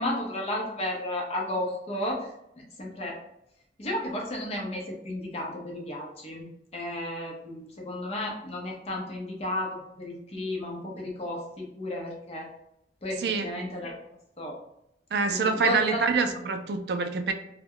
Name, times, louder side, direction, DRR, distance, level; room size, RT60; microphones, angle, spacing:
voice 1, 0.0-2.3 2.8-3.2 3.8-6.5 6.7-12.5 13.0-13.9 14.4-14.6 15.3-16.0, left 1 dB, 35° left, -1 dB, 0.6 m, -33 dB
voice 2, 13.2-13.5 15.1-17.3, right 4 dB, 60° right, 7 dB, 0.3 m, -26 dB
2.2 x 2.1 x 3.6 m, 0.80 s
head